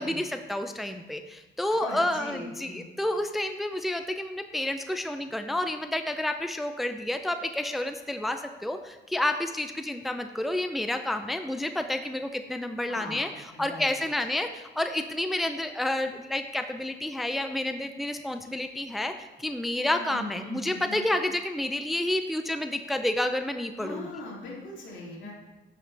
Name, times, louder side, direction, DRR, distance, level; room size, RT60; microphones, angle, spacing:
voice 1, 0.0-13.3 13.6-24.1 25.2-25.3, left 1 dB, ahead, 7 dB, 0.5 m, -30 dB
voice 2, 1.8-2.9 12.9-14.0 20.0-21.0 23.8-25.3, left 2 dB, 75° left, -4 dB, 2.9 m, -40 dB
11.5 x 6.2 x 3.4 m, 1.2 s
cardioid pair, 90°, 20 cm